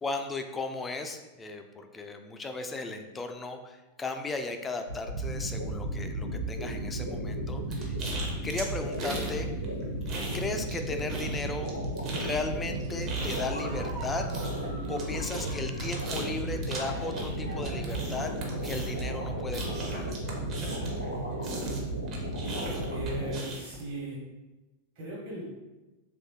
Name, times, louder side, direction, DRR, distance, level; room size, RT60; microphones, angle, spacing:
voice 1, 0.0-8.0 8.4-9.5 10.3-11.7 12.2-14.3 14.9-18.3 18.6-20.1, left 3 dB, 15° left, 6 dB, 0.3 m, -36 dB
sound 1, 4.9-23.3, right 1 dB, 85° left, 0.7 m, -34 dB
sound 2, 7.7-9.4 9.6-10.8 11.1-21.1 21.4-23.8, right 2 dB, 35° right, 0.7 m, -38 dB
Laughter, 13.3-21.6, right 1 dB, 85° right, 1.1 m, -47 dB
voice 2, 22.9-24.2 24.9-25.4, equal, 50° right, -6 dB, 1.2 m, -38 dB
3.1 x 2.6 x 3.0 m, 1.1 s
figure-of-eight pair, 90°, 0 cm